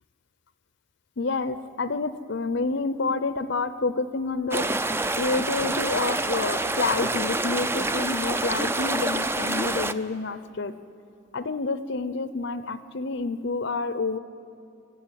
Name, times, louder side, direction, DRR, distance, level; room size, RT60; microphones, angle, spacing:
voice 1, 1.2-4.7 4.9-10.7 11.3-14.2, left 3 dB, 55° left, 13 dB, 0.6 m, -28 dB
sound 1, 4.5-9.9, right 2 dB, 10° right, 0.4 m, -27 dB
23.0 x 15.0 x 9.8 m, 2.8 s
head